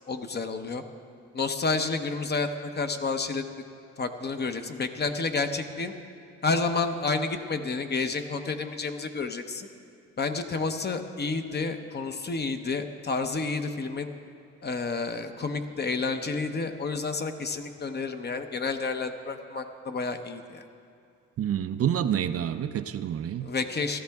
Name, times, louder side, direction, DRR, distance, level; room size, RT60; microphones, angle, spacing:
voice 1, 0.1-0.8 1.3-2.5 2.8-3.5 4.0-5.9 6.4-9.7 10.2-14.1 14.6-20.6 23.4-24.0, left 4 dB, 35° left, 7 dB, 0.8 m, -30 dB
voice 2, 21.4-23.5, right 9 dB, 50° right, 10 dB, 0.5 m, -28 dB
15.5 x 13.0 x 3.5 m, 2.5 s
cardioid pair, 90°, 30 cm